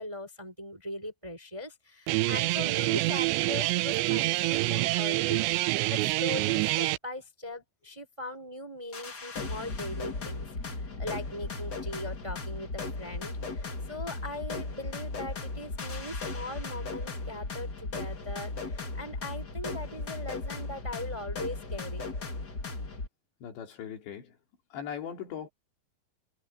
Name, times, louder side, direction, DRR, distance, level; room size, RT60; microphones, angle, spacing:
voice 1, 0.0-22.0, left 1 dB, 10° right, 3.1 m, -40 dB
Guitar, 2.1-7.0, right 20 dB, 85° right, 2.9 m, -27 dB
sound 1, 8.9-23.1, left 3 dB, 30° left, 2.2 m, -36 dB
voice 2, 23.4-24.3 24.7-25.5, left 8 dB, 75° left, 5.2 m, -39 dB
omnidirectional pair, 5.1 m